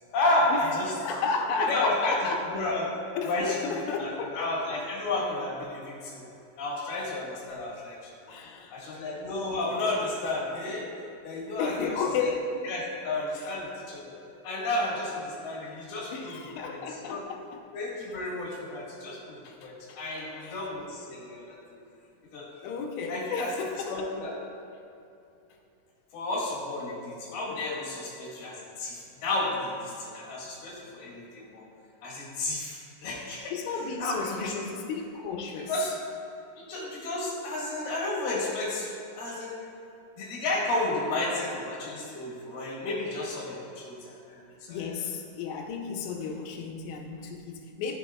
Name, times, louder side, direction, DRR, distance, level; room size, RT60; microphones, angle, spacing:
voice 1, 0.1-0.9 1.6-2.2 2.5-2.9 3.2-6.2 6.6-8.3 8.7-10.9 11.2-12.3 12.6-14.2 14.4-16.8 17.1-17.2 17.7-21.6 22.3-22.5 23.1-23.5 23.9-24.4 26.1-31.6 32.0-33.5 34.0-34.5 35.7-36.0 36.7-38.9 39.2-39.6 40.2-44.9, left 2 dB, 65° left, -7 dB, 3.4 m, -32 dB
voice 2, 1.0-2.5 3.2-4.5 8.3-9.0 10.7-10.8 11.6-12.6 16.1-17.6 19.4-19.6 20.0-20.7 22.6-24.1 33.5-35.7 44.7-48.0, left 4 dB, 80° left, 2 dB, 3.0 m, -33 dB
14.5 x 6.9 x 2.3 m, 2.7 s
omnidirectional pair, 5.2 m